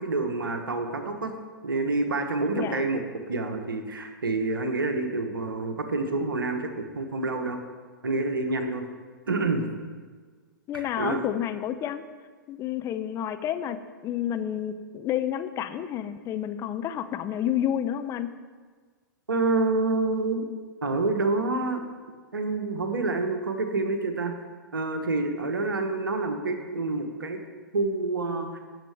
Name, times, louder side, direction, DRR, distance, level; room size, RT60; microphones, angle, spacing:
voice 1, 0.0-1.4 1.6-3.0 3.3-7.6 8.0-8.9 9.3-9.6 10.7-11.2 19.3-20.5 20.8-21.8 22.3-24.3 24.7-27.4 27.7-28.6, right 3 dB, 75° right, 6 dB, 1.2 m, -27 dB
voice 2, 10.7-12.0 12.5-18.3, left 10 dB, 25° left, 9 dB, 0.6 m, -30 dB
17.5 x 6.7 x 3.5 m, 1.5 s
figure-of-eight pair, 105°, 12 cm